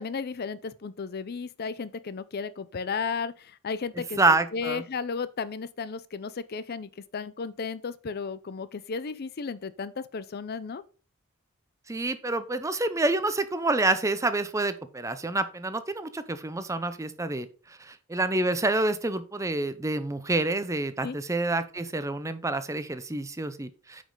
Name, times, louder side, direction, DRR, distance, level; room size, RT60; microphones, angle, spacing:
voice 1, 0.0-10.8 21.0-21.2, left 5 dB, 50° left, 0.5 m, -34 dB
voice 2, 4.2-4.8 11.9-24.0, right 2 dB, 15° right, 0.5 m, -28 dB
9.0 x 5.2 x 3.8 m
head